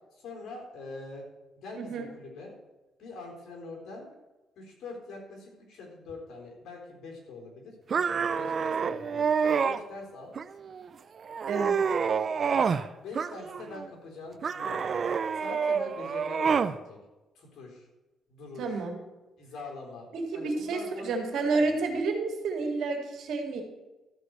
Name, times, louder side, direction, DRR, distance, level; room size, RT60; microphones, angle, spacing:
voice 1, 0.1-1.2 1.6-2.5 3.0-4.1 4.6-10.3 12.5-12.7 13.0-14.9 15.4-17.0 17.3-17.9 18.3-18.8 19.4-20.1 20.3-21.8, left 3 dB, 70° left, 0 dB, 3.9 m, -44 dB
voice 2, 1.7-2.1 11.5-11.8 18.6-19.0 20.1-23.6, right 3 dB, 75° right, 3 dB, 2.2 m, -30 dB
sound 1, 7.9-9.8 10.3-10.9 11.3-12.9 13.1-13.8 14.4-16.8, right 6 dB, 45° right, 0.5 m, -28 dB
13.0 x 4.7 x 8.0 m, 1.1 s
cardioid pair, 90°, 0 cm